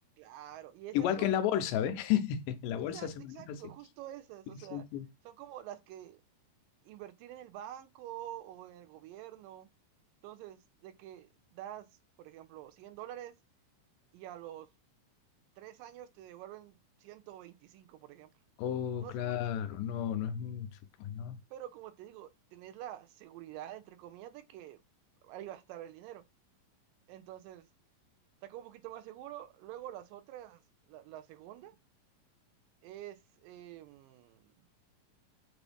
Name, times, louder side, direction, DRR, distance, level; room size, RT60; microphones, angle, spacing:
voice 1, 0.2-1.3 2.9-4.8 5.2-6.2 6.8-9.7 10.2-11.9 12.2-13.3 14.1-14.7 15.6-18.3 19.0-19.4 21.5-24.8 25.2-26.2 27.1-27.7 28.4-30.6 30.9-31.8 32.8-34.4, right 12 dB, 85° right, 2.3 m, -47 dB
voice 2, 0.9-3.6 4.7-5.1 18.6-20.7 21.0-21.4, left 10 dB, 80° left, 2.2 m, -32 dB
6.0 x 2.6 x 3.3 m
omnidirectional pair, 3.9 m